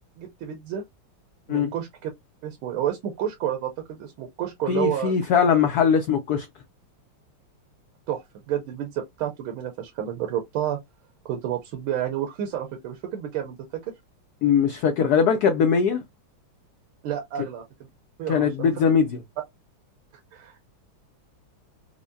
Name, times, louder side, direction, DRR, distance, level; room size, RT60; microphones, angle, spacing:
voice 1, 0.2-0.8 1.5-2.1 2.4-5.1 8.1-10.8 11.2-13.6 17.0-17.6 18.2-18.7 20.3-20.7, right 10 dB, 80° right, 1.6 m, -30 dB
voice 2, 4.7-6.5 14.4-16.0 18.3-19.2, left 6 dB, 80° left, 0.8 m, -21 dB
4.6 x 2.0 x 2.6 m
omnidirectional pair, 2.3 m